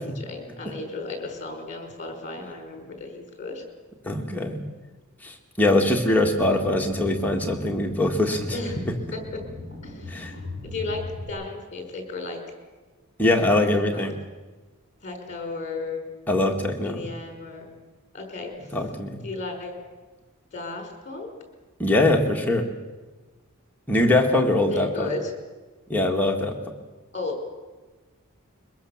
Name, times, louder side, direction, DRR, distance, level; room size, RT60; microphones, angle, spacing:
voice 1, 0.0-3.6 6.5-6.6 8.5-9.4 9.8-10.3 10.6-12.4 13.5-14.1 15.0-16.1 16.8-17.6 18.1-18.5 19.2-19.7 20.5-21.3 24.7-25.3 27.1-27.4, left 3 dB, 35° left, 4 dB, 5.1 m, -34 dB
voice 2, 4.1-4.6 5.2-8.6 10.1-10.3 13.2-14.1 16.3-17.1 18.7-19.2 21.8-22.7 23.9-25.1 25.9-26.6, left 1 dB, 10° left, 1 dB, 1.7 m, -22 dB
sound 1, 6.2-11.3, left 2 dB, 40° right, 5.9 m, -38 dB
23.0 x 21.0 x 7.2 m, 1.3 s
head